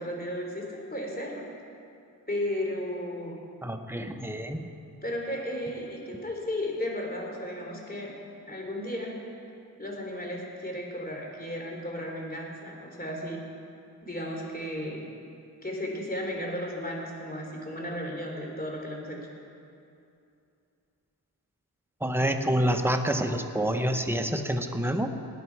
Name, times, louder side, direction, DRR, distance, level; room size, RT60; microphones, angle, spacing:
voice 1, 0.0-1.5 2.3-3.4 5.0-8.1 8.5-9.2 9.8-13.4 14.0-15.1 15.6-19.2, left 1 dB, 25° left, -1 dB, 3.4 m, -34 dB
voice 2, 3.6-4.7 22.0-25.1, right 1 dB, 5° right, 5 dB, 1.1 m, -27 dB
18.5 x 10.0 x 4.7 m, 2.6 s
cardioid pair, 55°, 38 cm